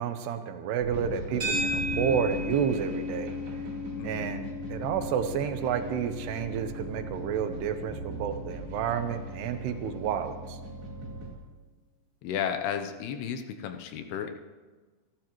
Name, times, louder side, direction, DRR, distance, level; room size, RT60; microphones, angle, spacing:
voice 1, 0.0-3.3 4.0-10.6, right 8 dB, 80° right, 8 dB, 2.9 m, -30 dB
sound 1, 0.8-11.3, right 2 dB, 65° right, 4.9 m, -39 dB
sound 2, 1.4-9.8, left 2 dB, 25° right, 4.5 m, -36 dB
voice 2, 4.0-4.3 12.2-14.3, left 8 dB, 80° left, 6 dB, 2.7 m, -33 dB
27.0 x 12.5 x 3.0 m, 1.3 s
omnidirectional pair, 4.8 m